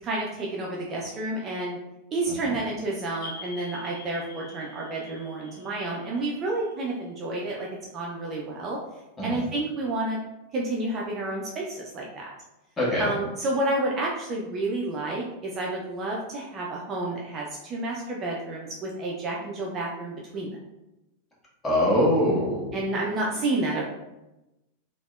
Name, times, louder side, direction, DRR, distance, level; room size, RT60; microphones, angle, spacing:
voice 1, 0.0-1.8 2.1-7.7 7.9-8.8 9.2-10.2 10.5-12.3 13.0-20.6 22.7-23.8, right 2 dB, 25° right, -3 dB, 0.4 m, -30 dB
sound 1, 3.2-7.7, left 4 dB, 60° left, 0.8 m, -46 dB
voice 2, 12.8-13.1 21.6-22.8, left 1 dB, 15° left, -7 dB, 1.2 m, -23 dB
3.3 x 2.1 x 2.3 m, 0.97 s
figure-of-eight pair, 90°, 0 cm